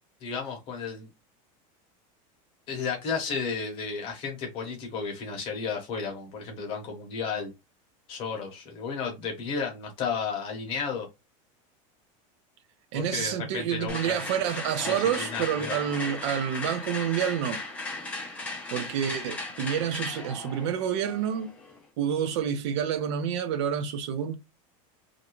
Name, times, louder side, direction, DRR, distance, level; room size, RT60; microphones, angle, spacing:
voice 1, 0.2-1.1 2.7-7.5 8.1-11.1 12.9-14.2 14.9-15.8, left 5 dB, 30° left, 0.8 m, -33 dB
voice 2, 12.9-17.6 18.7-21.6 22.0-24.3, right 9 dB, 55° right, 0.4 m, -28 dB
sound 1, 13.9-21.8, left 3 dB, 10° left, 0.4 m, -37 dB
2.5 x 2.1 x 2.9 m
supercardioid pair, 180°, 18 cm